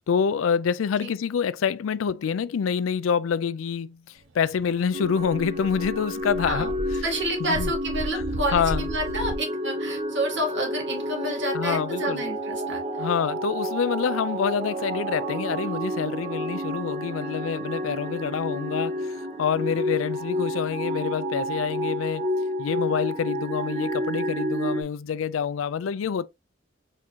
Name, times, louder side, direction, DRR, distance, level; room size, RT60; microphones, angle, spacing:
voice 1, 0.1-6.7 7.4-7.7 8.1-8.2 8.5-8.9 11.5-12.2 13.0-22.3 22.6-26.3, left 7 dB, 80° left, 0.4 m, -27 dB
Dog, 4.7-4.8 5.2-9.3, equal, 85° right, 0.9 m, -34 dB
sound 1, 4.9-24.8, equal, 35° right, 0.8 m, -30 dB
voice 2, 7.0-13.1, right 1 dB, 65° right, 2.4 m, -29 dB
4.4 x 3.6 x 2.7 m
head